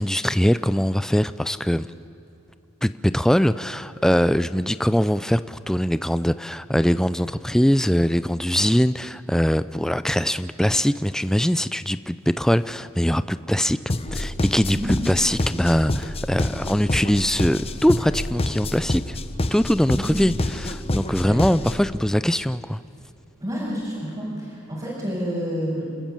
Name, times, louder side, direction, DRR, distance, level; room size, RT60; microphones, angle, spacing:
voice 1, 0.0-1.9 2.8-13.8 14.1-19.2 19.5-22.8, equal, 5° left, 14 dB, 0.4 m, -22 dB
sound 1, 13.9-21.9, left 1 dB, 30° left, 1.0 m, -27 dB
voice 2, 23.4-25.9, equal, 20° right, -8 dB, 6.2 m, -29 dB
28.5 x 13.5 x 8.9 m, 2.9 s
head